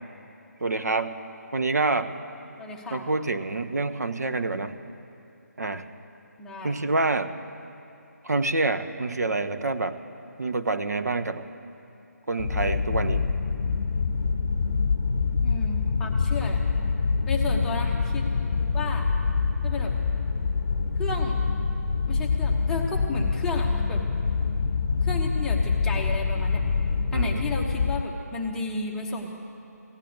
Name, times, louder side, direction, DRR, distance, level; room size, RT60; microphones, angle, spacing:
voice 1, 0.6-1.2 1.5-2.1 2.9-4.7 5.6-5.8 6.6-7.3 8.2-10.0 10.4-11.5 12.3-13.3 27.1-27.4, right 3 dB, 70° right, 9 dB, 0.9 m, -27 dB
voice 2, 2.6-3.1 6.4-6.8 15.4-16.6 17.3-18.3 18.7-19.1 19.6-19.9 21.0-21.4 22.1-24.0 25.0-26.6 27.1-29.4, left 3 dB, 5° left, 0 dB, 0.8 m, -33 dB
sound 1, 12.4-28.0, left 4 dB, 55° left, 0.7 m, -25 dB
16.0 x 10.0 x 7.9 m, 2.9 s
figure-of-eight pair, 155°, 9 cm